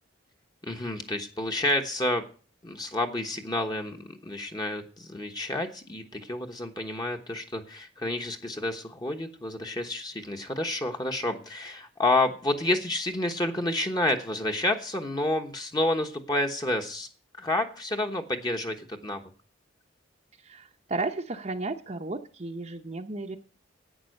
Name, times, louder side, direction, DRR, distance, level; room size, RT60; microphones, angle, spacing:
voice 1, 0.6-2.2 2.6-17.1 17.4-19.2, left 1 dB, 20° left, 4 dB, 1.1 m, -29 dB
voice 2, 20.4-23.4, right 3 dB, 35° right, 3 dB, 0.8 m, -33 dB
11.0 x 9.0 x 6.5 m, 0.38 s
head